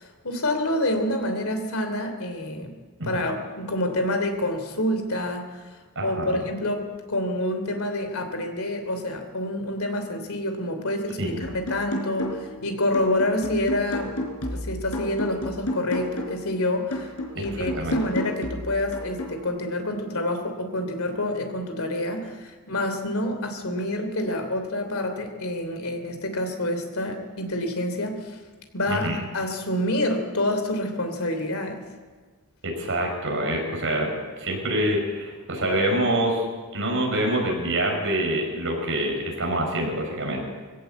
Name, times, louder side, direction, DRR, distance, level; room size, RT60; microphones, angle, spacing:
voice 1, 0.0-2.7 3.0-5.6 6.0-14.2 14.5-28.4 28.7-29.1 29.3-31.8, left 1 dB, 70° left, 6 dB, 3.1 m, -27 dB
voice 2, 5.9-6.4 11.2-11.4 17.3-18.0 28.9-29.2 32.6-34.1 34.4-36.4 36.7-40.4, right 1 dB, 60° right, 1 dB, 6.2 m, -26 dB
sound 1, 11.4-12.6 12.9-16.5 16.9-19.4, left 1 dB, 85° left, 4.6 m, -32 dB
20.5 x 16.5 x 8.1 m, 1.4 s
head